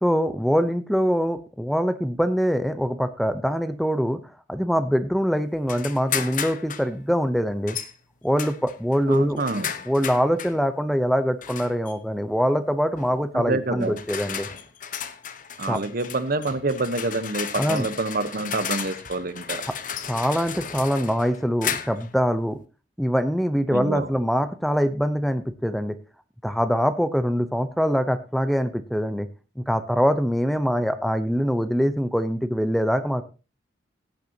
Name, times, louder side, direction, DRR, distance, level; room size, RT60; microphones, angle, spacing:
voice 1, 0.0-4.2 4.5-7.8 8.2-9.4 9.9-14.5 15.7-15.8 17.5-17.9 20.1-22.6 23.0-25.9 26.4-29.3 29.6-33.2, equal, ahead, 10 dB, 0.8 m, -23 dB
sound 1, 5.7-6.9 7.7-7.9 8.4-10.6 11.4-11.9 13.0-13.2 13.8-22.1, left 8 dB, 45° left, 1.1 m, -34 dB
voice 2, 9.1-9.7 13.3-14.0 15.6-19.6 23.7-24.1, right 2 dB, 55° right, 12 dB, 1.1 m, -27 dB
17.0 x 9.2 x 2.9 m, 0.31 s
head